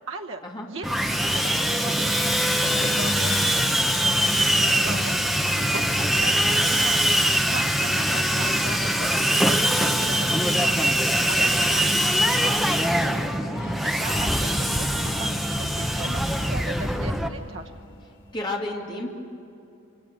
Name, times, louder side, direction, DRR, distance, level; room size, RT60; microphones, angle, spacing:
voice 1, 0.1-2.1 3.0-3.3 4.8-5.9 6.2-6.8 7.5-11.9 12.2-12.6 13.8-17.6, right 3 dB, 75° right, 2 dB, 1.1 m, -38 dB
Sawing, 0.8-17.3, equal, ahead, 0.9 m, -23 dB
sound 1, 2.1-18.0, left 1 dB, 65° left, 4.5 m, -41 dB
voice 2, 2.6-3.0 5.7-6.1 6.6-6.7 11.4-11.5 13.4-13.6 18.3-19.1, left 2 dB, 25° left, -1 dB, 2.6 m, -33 dB
27.0 x 24.0 x 6.8 m, 2.7 s
head